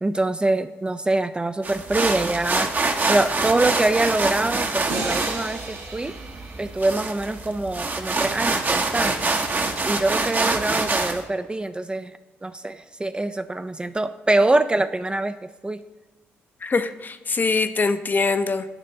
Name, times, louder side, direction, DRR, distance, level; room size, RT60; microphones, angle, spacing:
voice 1, 0.0-6.1 6.6-12.1 12.4-15.8, right 2 dB, 20° right, 11 dB, 0.4 m, -24 dB
sound 1, 1.6-11.2, right 3 dB, 35° right, 0.8 m, -25 dB
sound 2, 4.9-8.1, right 2 dB, 65° right, 1.8 m, -34 dB
voice 2, 16.6-18.7, left 4 dB, 35° left, 10 dB, 0.5 m, -23 dB
9.8 x 3.3 x 5.5 m, 1.2 s
hypercardioid pair, 50°, 5 cm